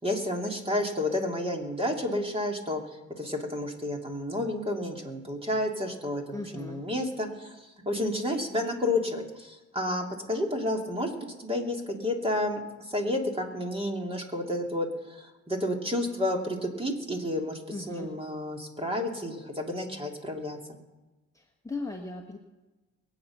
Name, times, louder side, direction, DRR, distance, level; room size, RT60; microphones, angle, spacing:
voice 1, 0.0-2.8 3.2-7.6 7.8-17.6 17.9-20.6, left 1 dB, 20° right, 1 dB, 2.9 m, -31 dB
voice 2, 6.3-6.8 17.7-18.1 21.3-22.4, left 3 dB, 10° left, 1 dB, 1.4 m, -37 dB
22.5 x 8.6 x 6.0 m, 1.1 s
cardioid pair, 90°, 30 cm